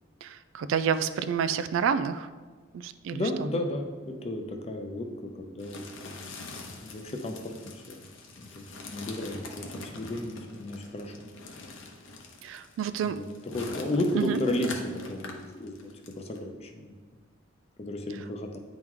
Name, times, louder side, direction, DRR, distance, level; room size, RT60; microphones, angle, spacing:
voice 1, 0.2-2.3 2.7-3.5 12.4-13.2 14.1-14.4, right 7 dB, 75° right, 13 dB, 0.3 m, -29 dB
voice 2, 3.1-6.3 6.8-8.0 8.4-11.3 13.0-14.8 15.1-16.9 17.8-18.6, left 1 dB, 30° left, 4 dB, 0.6 m, -33 dB
sound 1, 5.6-16.4, left 3 dB, 70° left, 0.8 m, -43 dB
9.2 x 3.1 x 3.7 m, 1.4 s
head